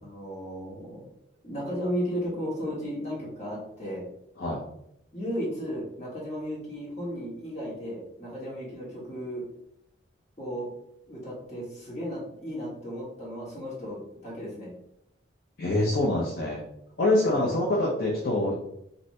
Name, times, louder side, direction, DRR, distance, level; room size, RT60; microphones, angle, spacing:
voice 1, 0.0-1.0 1.4-4.1 5.1-9.4 10.4-10.7 11.1-14.7 17.2-17.4, equal, 35° left, -6 dB, 1.3 m, -34 dB
voice 2, 15.6-16.6 17.0-18.6, left 1 dB, 55° left, -4 dB, 0.5 m, -25 dB
3.1 x 2.6 x 2.6 m, 0.76 s
head